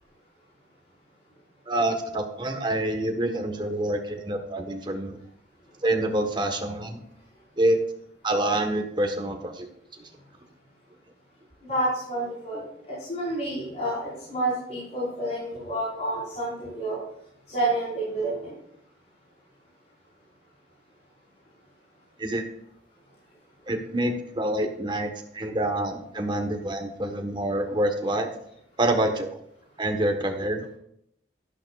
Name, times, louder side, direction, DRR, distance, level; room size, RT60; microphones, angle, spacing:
voice 1, 1.7-5.2 5.8-7.0 7.6-7.8 8.2-9.7 22.2-22.5 23.7-28.3 28.8-29.4 29.8-30.7, right 1 dB, 25° right, 4 dB, 1.3 m, -26 dB
voice 2, 11.7-17.0 17.5-18.5, right 1 dB, 40° left, -8 dB, 4.8 m, -29 dB
12.0 x 11.5 x 2.4 m, 0.73 s
head